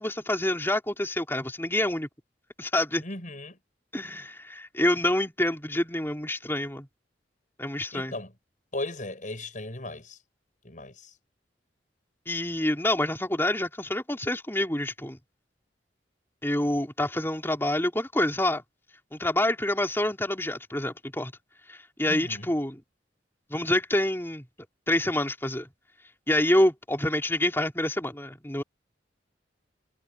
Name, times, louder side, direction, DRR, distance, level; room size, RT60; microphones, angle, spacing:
voice 1, 0.0-2.1 2.6-3.0 3.9-6.9 7.6-8.2 12.3-15.2 16.4-18.6 19.1-21.3 21.7-22.8 23.5-24.5 24.9-25.7 26.3-28.6, left 1 dB, 15° left, 3.8 m, -27 dB
voice 2, 3.0-3.6 7.9-8.3 8.7-10.2 10.6-11.1 22.0-22.5, left 2 dB, 45° left, 6.3 m, -37 dB
head